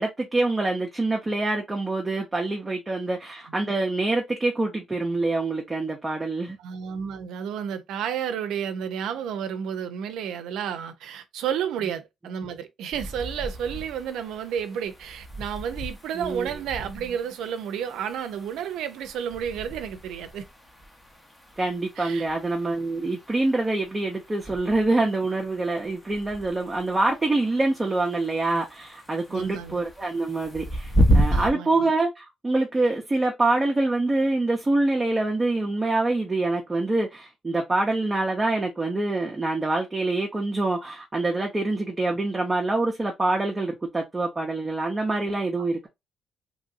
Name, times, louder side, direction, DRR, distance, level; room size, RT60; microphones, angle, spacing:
voice 1, 0.0-6.6 16.1-16.5 21.6-45.9, right 2 dB, 20° right, 0.6 m, -25 dB
voice 2, 6.6-20.5 22.0-22.3 29.3-29.8 31.3-31.9, right 8 dB, 85° right, 0.5 m, -31 dB
sound 1, 12.9-31.5, equal, 20° left, 0.8 m, -32 dB
3.0 x 2.6 x 2.5 m
cardioid pair, 90°, 0 cm